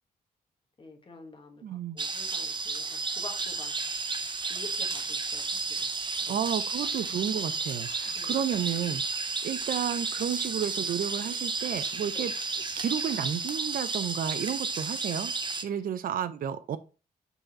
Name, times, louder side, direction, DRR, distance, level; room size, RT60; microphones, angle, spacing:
voice 1, 0.8-3.8 4.5-5.9 6.2-6.4 8.1-8.4 12.1-12.3, left 3 dB, 35° left, 3 dB, 1.6 m, -48 dB
voice 2, 1.6-2.0 6.3-12.3 12.8-15.3 15.6-16.8, right 9 dB, 65° right, 12 dB, 0.5 m, -32 dB
sound 1, 2.0-15.6, right 4 dB, 30° right, 0.7 m, -32 dB
5.1 x 4.8 x 4.2 m, 0.34 s
cardioid pair, 105°, 16 cm